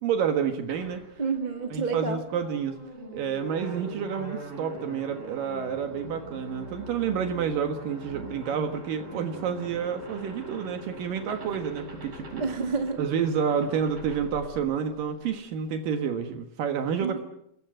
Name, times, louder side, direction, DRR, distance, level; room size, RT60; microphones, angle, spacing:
voice 1, 0.0-1.0 1.7-2.8 3.1-12.4 13.0-17.2, right 7 dB, 75° right, 6 dB, 3.2 m, -29 dB
sound 1, 0.7-15.2, right 1 dB, 45° right, 8.6 m, -42 dB
voice 2, 1.2-2.2 12.4-13.0 17.0-17.2, right 4 dB, 20° right, 4 dB, 1.4 m, -29 dB
29.0 x 21.0 x 7.8 m, 0.81 s
omnidirectional pair, 3.9 m